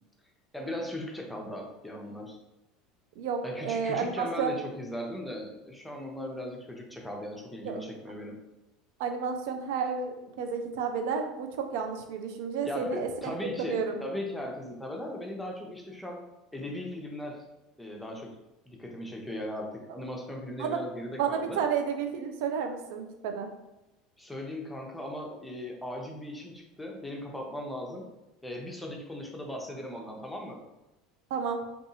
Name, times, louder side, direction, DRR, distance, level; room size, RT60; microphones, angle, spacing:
voice 1, 0.5-2.4 3.4-8.4 12.6-16.2 16.5-17.4 17.8-18.4 18.7-21.6 24.2-28.1 28.4-30.6, left 1 dB, 5° left, 0 dB, 0.6 m, -38 dB
voice 2, 3.2-4.5 7.6-7.8 9.0-13.3 13.7-14.0 20.6-20.8 21.2-23.5 31.3-31.6, right 6 dB, 65° right, 5 dB, 0.4 m, -31 dB
2.6 x 2.3 x 2.7 m, 0.97 s
hypercardioid pair, 75°, 0 cm